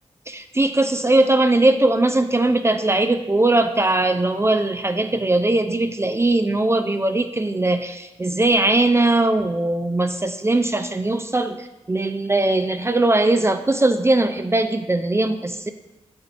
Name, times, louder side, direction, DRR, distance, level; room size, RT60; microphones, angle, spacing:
voice 1, 0.3-15.7, right 2 dB, 20° right, 8 dB, 0.4 m, -20 dB
7.4 x 6.1 x 2.5 m, 0.99 s
cardioid pair, 40°, 12 cm